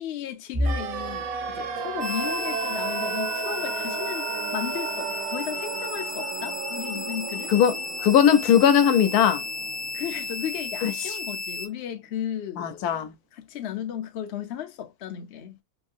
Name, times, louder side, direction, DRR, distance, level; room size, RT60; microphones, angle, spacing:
voice 1, 0.0-7.5 9.9-12.9 13.3-15.6, left 10 dB, 60° left, 0.7 m, -35 dB
sound 1, 0.5-12.4 12.8-13.1 13.4-13.6 14.5-14.9, left 1 dB, 25° right, 0.5 m, -39 dB
sound 2, 0.6-10.6 10.8-10.9, right 7 dB, 75° right, 1.0 m, -34 dB
sound 3, 2.0-11.7, left 4 dB, 40° left, 1.0 m, -34 dB
voice 2, 7.5-9.4 10.8-11.2 12.6-13.1, left 9 dB, 85° left, 1.1 m, -20 dB
3.0 x 2.7 x 2.4 m
omnidirectional pair, 1.6 m